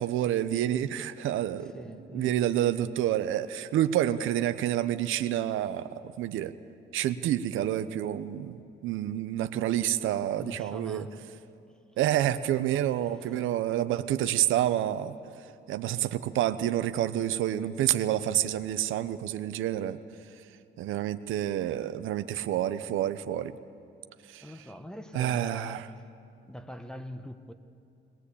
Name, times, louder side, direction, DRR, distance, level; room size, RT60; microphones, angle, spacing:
voice 1, 0.0-1.8 2.1-6.5 6.9-11.1 12.0-15.1 15.7-20.0 20.8-23.5 24.3-24.4 25.1-25.9, right 12 dB, 85° right, 11 dB, 0.8 m, -28 dB
voice 2, 1.6-2.4 10.4-11.2 13.0-13.4 24.4-26.0 26.4-27.5, equal, 5° left, 8 dB, 1.2 m, -43 dB
20.0 x 20.0 x 8.5 m, 2.6 s
cardioid pair, 90°, 20 cm